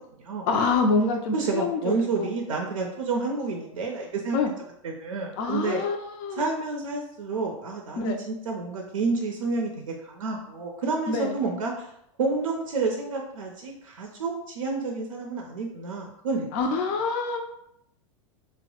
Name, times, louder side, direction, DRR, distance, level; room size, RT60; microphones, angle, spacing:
voice 1, 0.4-2.3 4.3-4.5 5.4-6.5 8.0-8.2 11.1-11.4 16.5-17.4, left 4 dB, 50° left, 3 dB, 0.4 m, -26 dB
voice 2, 1.3-4.4 4.8-5.8 6.4-11.9 12.2-16.4, right 4 dB, 85° right, 1 dB, 0.4 m, -29 dB
3.0 x 2.0 x 2.8 m, 0.76 s
hypercardioid pair, 95°, 17 cm